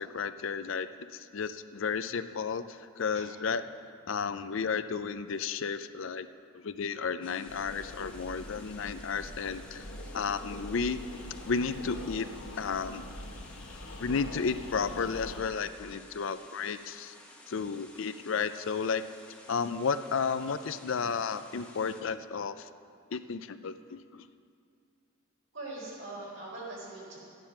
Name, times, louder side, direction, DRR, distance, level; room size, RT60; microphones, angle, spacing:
voice 1, 0.0-3.6 4.1-6.3 6.5-9.9 10.1-11.0 11.5-12.3 12.6-13.0 14.0-17.1 17.5-19.0 19.5-22.7 23.1-24.3, left 5 dB, 65° left, 12 dB, 0.5 m, -33 dB
sound 1, 7.2-22.0, left 1 dB, 5° left, 1.0 m, -54 dB
sound 2, 7.5-15.4, left 1 dB, 85° left, 1.3 m, -44 dB
voice 2, 25.5-27.2, right 2 dB, 65° right, -4 dB, 4.1 m, -42 dB
13.0 x 10.0 x 5.9 m, 2.3 s
head